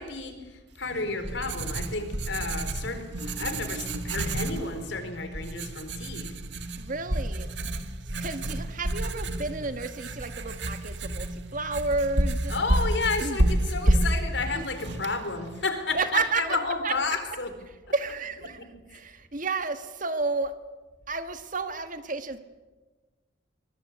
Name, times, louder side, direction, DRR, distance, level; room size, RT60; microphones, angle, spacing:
voice 1, 0.0-6.4 12.5-17.5 18.6-18.7, left 3 dB, 70° left, 8 dB, 4.2 m, -32 dB
Writing, 0.8-15.6, right 1 dB, 65° right, 2.1 m, -30 dB
voice 2, 6.8-7.5 8.2-12.5 13.2-13.4 13.8-14.0 14.5-14.6 15.9-16.4 16.8-16.9 17.9-20.5 21.1-22.4, right 3 dB, 45° right, 9 dB, 1.7 m, -31 dB
23.5 x 22.5 x 8.5 m, 1.3 s
head